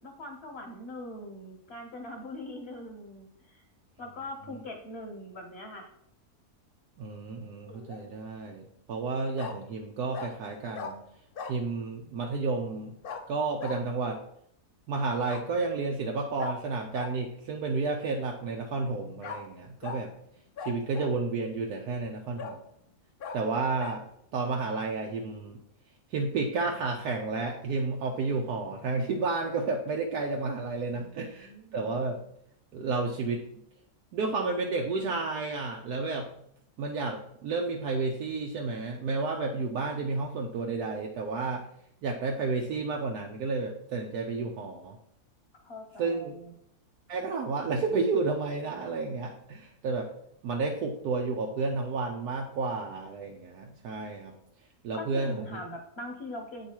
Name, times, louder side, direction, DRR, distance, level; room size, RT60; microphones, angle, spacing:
voice 1, 0.0-3.6 4.0-5.9 30.8-31.9 45.5-46.5 54.9-56.7, left 1 dB, 50° left, 1 dB, 0.9 m, -42 dB
voice 2, 7.0-11.0 11.5-12.9 13.3-14.2 14.9-20.1 20.6-22.6 23.3-24.0 24.3-25.6 26.1-32.2 32.7-33.4 34.1-36.3 36.8-41.7 42.0-45.0 46.0-46.3 47.1-50.1 50.4-54.3 54.8-55.4, right 3 dB, 80° right, 1 dB, 1.1 m, -31 dB
Bark, 7.7-8.0 9.4-9.6 10.1-10.3 10.7-10.9 11.3-11.6 13.0-13.2 13.6-13.8 15.2-15.4 16.4-16.5 16.9-17.1 19.2-19.4 19.8-20.0 20.6-21.2 21.7-21.8 22.4-22.6 23.2-23.4 23.8-24.0, left 5 dB, 85° left, 0.4 m, -38 dB
8.1 x 3.1 x 4.4 m, 0.73 s
omnidirectional pair, 1.7 m